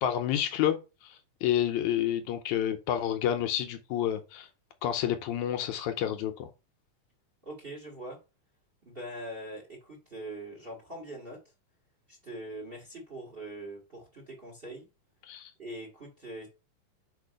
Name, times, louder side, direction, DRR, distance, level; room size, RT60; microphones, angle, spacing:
voice 1, 0.0-4.5 4.8-6.5 15.2-15.5, left 10 dB, 75° left, 2.0 m, -29 dB
voice 2, 7.4-8.2 8.8-11.4 12.1-14.9 15.6-16.5, right 1 dB, 25° right, 1.6 m, -42 dB
5.0 x 4.5 x 5.0 m
omnidirectional pair, 3.5 m